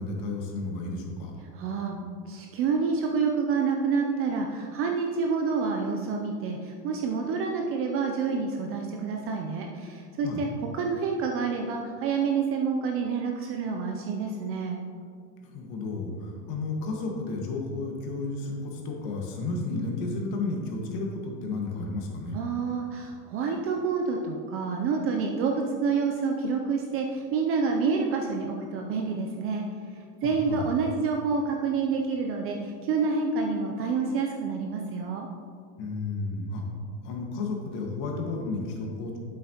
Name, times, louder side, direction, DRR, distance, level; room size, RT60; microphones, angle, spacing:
voice 1, 0.0-1.3 10.2-10.4 15.4-22.4 30.2-30.7 35.8-36.6 37.0-39.2, left 3 dB, 50° left, 1 dB, 1.7 m, -32 dB
voice 2, 1.5-10.5 10.7-14.8 22.3-29.6 29.9-35.3, right 5 dB, 30° right, 2 dB, 0.4 m, -28 dB
8.3 x 7.5 x 2.9 m, 2.2 s
supercardioid pair, 125°, 49 cm